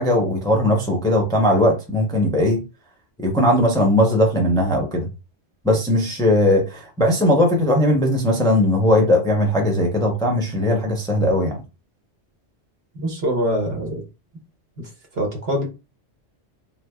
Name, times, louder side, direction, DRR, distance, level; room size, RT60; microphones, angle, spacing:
voice 1, 0.0-2.6 3.2-5.1 5.6-11.6, left 1 dB, 5° left, 0.5 m, -18 dB
voice 2, 12.9-14.0 14.8-15.6, equal, 60° right, 1.2 m, -24 dB
3.2 x 3.2 x 2.2 m
omnidirectional pair, 1.2 m